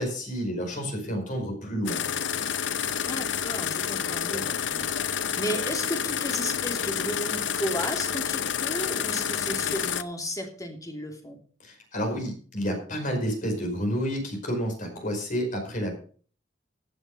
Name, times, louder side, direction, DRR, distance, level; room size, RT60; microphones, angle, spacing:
voice 1, 0.0-2.0 11.6-15.9, equal, 45° left, 3 dB, 5.0 m, -30 dB
sound 1, 1.9-10.0, left 8 dB, 80° left, 0.8 m, -29 dB
voice 2, 3.1-4.9 5.4-11.4, equal, 20° left, 3 dB, 2.7 m, -34 dB
15.5 x 7.9 x 5.4 m, 0.44 s
head